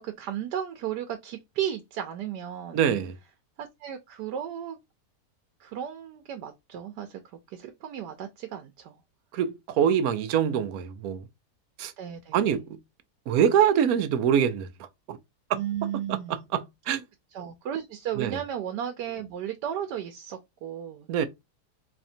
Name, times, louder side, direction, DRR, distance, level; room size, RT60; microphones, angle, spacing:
voice 1, 0.0-2.8 3.6-4.8 5.6-7.2 7.5-9.0 12.0-12.4 15.6-16.4 17.3-21.3, right 10 dB, 90° right, 1.2 m, -34 dB
voice 2, 2.7-3.2 9.3-11.2 11.8-11.9 12.3-12.8 13.3-14.7 15.1-15.2 15.5-15.6 16.1-17.0 18.2-18.4 21.1-21.3, right 8 dB, 70° right, 1.0 m, -24 dB
4.2 x 2.8 x 2.6 m
omnidirectional pair, 1.7 m